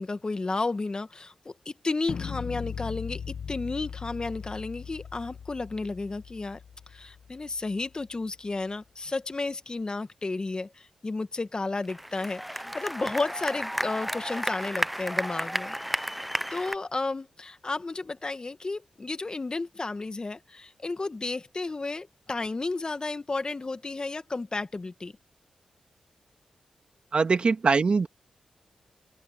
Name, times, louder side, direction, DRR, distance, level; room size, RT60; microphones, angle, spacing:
voice 1, 0.0-6.6 6.9-15.7 16.5-25.1, left 3 dB, 40° left, 1.7 m, -32 dB
sound 1, 2.1-8.1, left 7 dB, 70° left, 1.3 m, -39 dB
sound 2, 11.8-16.8, equal, ahead, 1.0 m, -32 dB
voice 2, 27.1-28.1, right 4 dB, 55° right, 2.0 m, -22 dB
open air
supercardioid pair, 40°, 2 cm